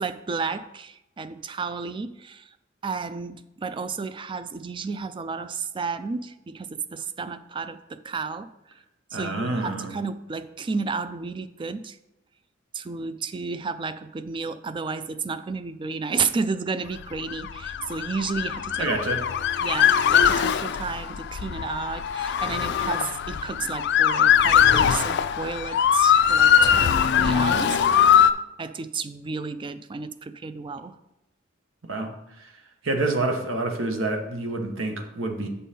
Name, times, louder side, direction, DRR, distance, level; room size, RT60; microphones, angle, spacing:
voice 1, 0.0-2.5 2.8-8.5 9.1-12.0 12.7-18.9 19.6-27.8 28.2-31.0, right 4 dB, 25° right, 13 dB, 0.3 m, -32 dB
voice 2, 9.1-9.9 18.8-19.2 31.8-32.1 32.4-32.5 32.8-35.5, right 2 dB, 80° right, 4 dB, 1.1 m, -27 dB
Motor vehicle (road) / Siren, 17.2-28.3, left 8 dB, 60° left, 0.4 m, -21 dB
8.2 x 5.5 x 4.2 m, 0.89 s
head